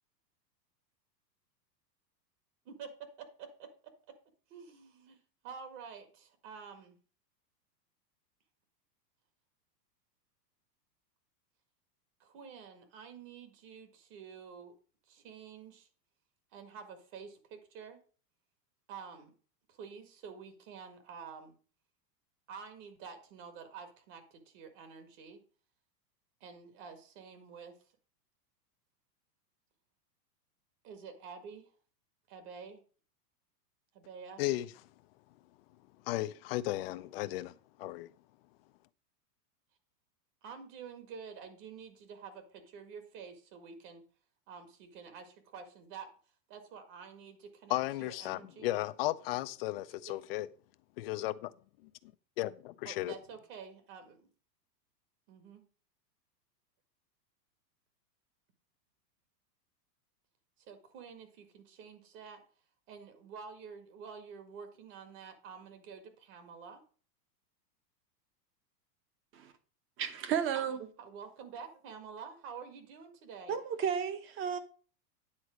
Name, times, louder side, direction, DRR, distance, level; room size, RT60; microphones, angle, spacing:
voice 1, 2.7-4.1 4.5-5.2 5.4-7.0 12.2-14.7 15.1-15.9 16.5-18.0 18.9-19.3 19.7-21.5 22.5-25.4 26.4-27.7 30.8-31.7 32.3-32.8 33.9-34.4 40.4-44.0 44.5-46.1 46.5-48.7 50.1-50.2 52.8-54.3 55.3-55.6 60.6-62.4 62.9-66.8 71.0-73.6, right 6 dB, 45° right, 1.8 m, -49 dB
voice 2, 36.1-37.5 37.8-38.1 47.7-50.5 51.0-51.5 51.8-51.9 52.4-53.1, left 17 dB, 40° left, 0.4 m, -35 dB
voice 3, 70.0-70.9 73.5-74.6, right 8 dB, 25° right, 0.9 m, -33 dB
9.7 x 4.1 x 6.1 m
supercardioid pair, 140°, 50 cm